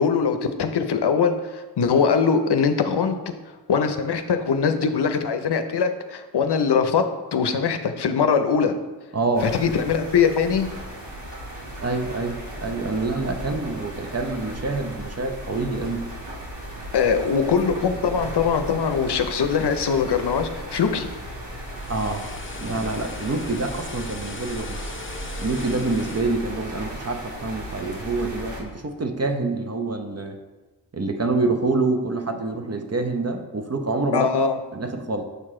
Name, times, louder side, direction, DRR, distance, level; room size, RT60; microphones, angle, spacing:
voice 1, 0.0-3.2 3.7-7.0 7.3-8.7 9.4-10.7 16.9-21.1 34.1-34.6, left 6 dB, 65° left, 8 dB, 0.7 m, -22 dB
voice 2, 9.1-9.6 11.8-16.1 21.9-22.3 22.6-24.9 25.4-30.4 30.9-34.3 34.7-35.2, right 3 dB, 35° right, 5 dB, 0.8 m, -26 dB
sound 1, 9.3-28.6, right 1 dB, 75° right, 1.8 m, -36 dB
sound 2, 21.4-27.6 28.0-28.2, left 4 dB, 30° left, 0.6 m, -41 dB
6.8 x 4.7 x 3.7 m, 1.2 s
cardioid pair, 40°, 43 cm